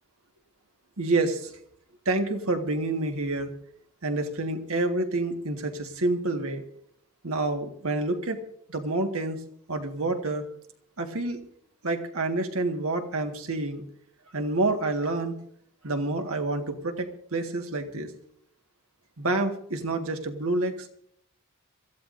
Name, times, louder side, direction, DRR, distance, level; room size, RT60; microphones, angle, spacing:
voice 1, 1.0-1.5 2.1-3.5 4.0-6.6 7.2-8.4 8.7-9.4 9.7-10.4 11.0-11.4 11.8-13.8 14.3-15.3 15.8-18.1 19.2-20.9, right 2 dB, 80° right, 5 dB, 1.7 m, -28 dB
26.5 x 14.5 x 2.6 m, 0.67 s
head